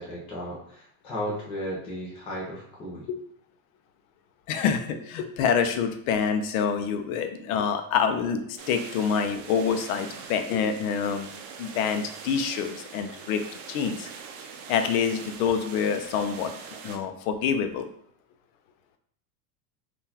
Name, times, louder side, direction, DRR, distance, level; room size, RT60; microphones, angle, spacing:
voice 1, 0.0-3.1, equal, 15° left, -4 dB, 0.3 m, -35 dB
voice 2, 4.5-11.3 11.6-13.4 13.7-14.1 14.7-16.5 16.8-17.9, left 6 dB, 65° left, 7 dB, 0.5 m, -26 dB
sound 1, 8.6-17.0, right 6 dB, 55° right, 0.5 m, -43 dB
3.7 x 2.4 x 2.7 m, 0.66 s
supercardioid pair, 160°, 45 cm